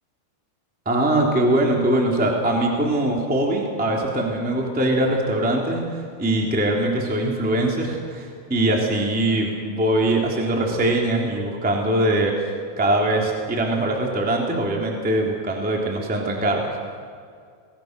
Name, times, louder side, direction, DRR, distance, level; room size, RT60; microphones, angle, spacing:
voice 1, 0.8-12.3 12.8-16.6, right 1 dB, 5° right, 0 dB, 1.7 m, -22 dB
25.0 x 19.5 x 6.7 m, 2.2 s
omnidirectional pair, 5.9 m